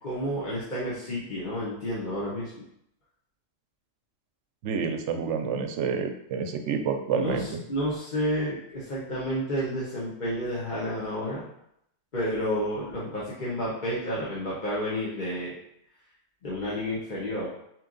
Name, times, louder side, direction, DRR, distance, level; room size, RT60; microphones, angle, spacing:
voice 1, 0.0-2.5 7.1-11.4 12.1-15.5 16.4-17.5, equal, 40° left, -8 dB, 1.1 m, -30 dB
voice 2, 4.6-7.5, right 6 dB, 75° right, 6 dB, 0.9 m, -28 dB
4.4 x 3.1 x 3.8 m, 0.75 s
omnidirectional pair, 1.3 m